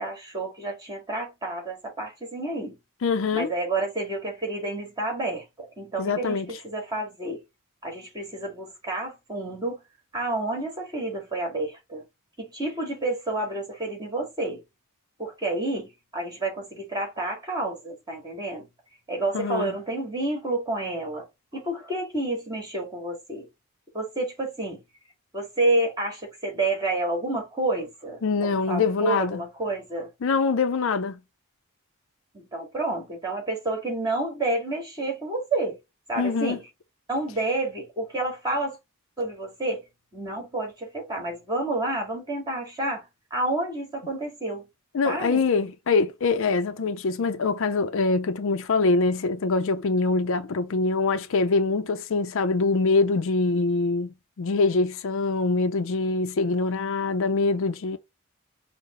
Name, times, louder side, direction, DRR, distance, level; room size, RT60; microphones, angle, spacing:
voice 1, 0.0-2.8 3.3-7.4 7.8-9.8 10.1-12.0 12.4-14.6 15.2-18.7 19.1-21.3 21.5-23.5 23.9-24.8 25.3-30.1 32.3-35.8 36.1-36.6 37.1-38.8 39.2-39.8 40.1-43.0 43.3-44.7 45.0-45.4, right 2 dB, 20° right, 1.9 m, -29 dB
voice 2, 3.0-3.5 6.0-6.5 19.3-19.7 28.2-29.4 30.2-31.2 36.2-36.6 44.9-58.0, left 3 dB, 60° left, 0.5 m, -24 dB
5.6 x 2.1 x 3.7 m
head